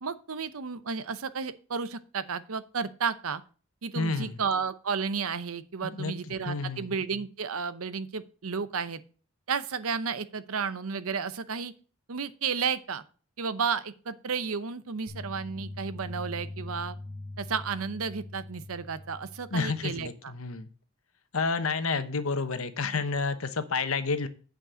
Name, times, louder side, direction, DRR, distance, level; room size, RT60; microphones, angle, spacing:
voice 1, 0.0-3.4 3.8-9.0 9.5-11.7 12.1-13.0 13.4-17.0 17.4-20.3, right 5 dB, 75° right, 14 dB, 0.8 m, -32 dB
voice 2, 3.9-4.4 5.8-7.0 19.5-20.7 21.3-24.3, left 4 dB, 75° left, 10 dB, 1.0 m, -30 dB
sound 1, 15.1-20.1, left 2 dB, 55° right, 3.1 m, -42 dB
9.2 x 5.3 x 6.3 m, 0.38 s
head